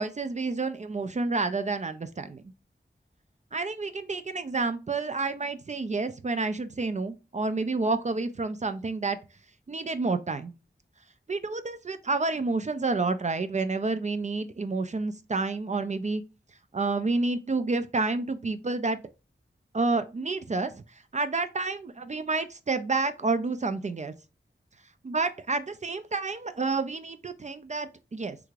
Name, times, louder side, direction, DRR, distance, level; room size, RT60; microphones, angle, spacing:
voice 1, 0.0-2.4 3.5-9.2 9.7-10.5 11.3-16.2 16.7-19.0 19.7-20.8 21.1-24.1 25.0-28.4, right 3 dB, 40° right, 0.4 m, -29 dB
3.4 x 2.4 x 3.1 m
wide cardioid pair, 55°, 20 cm